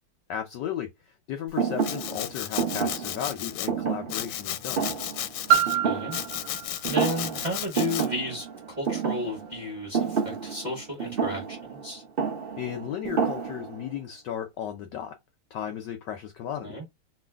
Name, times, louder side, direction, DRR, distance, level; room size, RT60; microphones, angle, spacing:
voice 1, 0.3-4.9 12.6-15.2 15.5-16.8, left 9 dB, 75° left, 1.0 m, -35 dB
Thump thud, 1.6-6.6 6.8-7.5 7.8-13.9, right 6 dB, 55° right, 0.6 m, -30 dB
Domestic sounds home sounds, 1.8-3.7 4.1-5.8 6.1-8.1, left 12 dB, 90° left, 1.5 m, -34 dB
Piano, 5.5-10.9 11.7-11.8, right 10 dB, 75° right, 1.0 m, -30 dB
voice 2, 5.8-6.2 6.8-12.0 16.6-16.9, left 1 dB, 25° right, 1.1 m, -33 dB
3.1 x 2.8 x 3.3 m
omnidirectional pair, 2.4 m